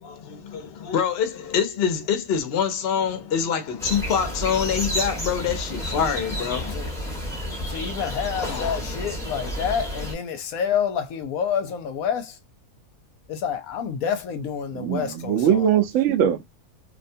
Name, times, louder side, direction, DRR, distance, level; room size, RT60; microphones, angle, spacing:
voice 1, 0.0-6.8 8.3-8.8, left 7 dB, 55° left, 0.7 m, -25 dB
sound 1, 3.8-10.1, equal, 5° left, 0.8 m, -31 dB
voice 2, 7.7-12.3 13.3-15.6, left 7 dB, 75° left, 1.0 m, -28 dB
voice 3, 14.7-16.5, right 9 dB, 70° right, 0.8 m, -21 dB
2.7 x 2.2 x 2.6 m
omnidirectional pair, 1.6 m